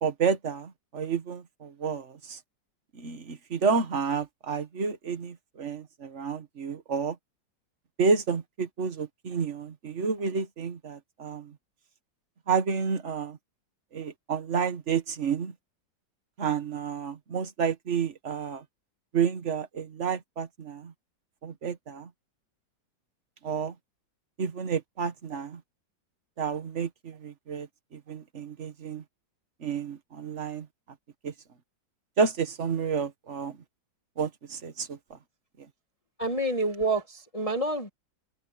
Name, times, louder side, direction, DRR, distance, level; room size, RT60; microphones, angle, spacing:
voice 1, 0.0-2.4 2.9-7.2 8.0-11.5 12.5-13.4 13.9-15.5 16.4-18.6 19.1-20.9 21.4-22.1 23.4-23.8 24.4-25.6 26.4-27.7 27.9-29.0 29.6-30.7 31.2-31.3 32.2-33.6 34.2-35.2, right 6 dB, 40° right, 1.7 m, -30 dB
voice 2, 36.2-37.9, right 2 dB, 20° left, 1.6 m, -28 dB
omnidirectional pair, 2.0 m